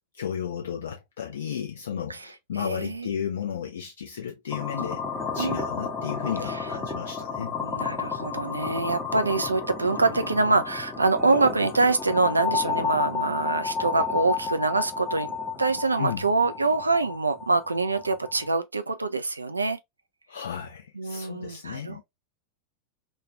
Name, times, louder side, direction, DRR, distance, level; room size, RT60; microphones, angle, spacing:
voice 1, 0.2-5.0 5.3-7.6 16.0-16.3 20.3-22.0, left 8 dB, 65° left, 0.7 m, -33 dB
voice 2, 2.6-3.1 5.4-5.6 6.5-6.6 7.6-19.8 21.0-22.0, right 3 dB, 80° right, 0.3 m, -25 dB
sound 1, 4.5-18.5, left 5 dB, 20° left, 0.8 m, -32 dB
3.0 x 2.4 x 2.4 m
figure-of-eight pair, 90°, 0 cm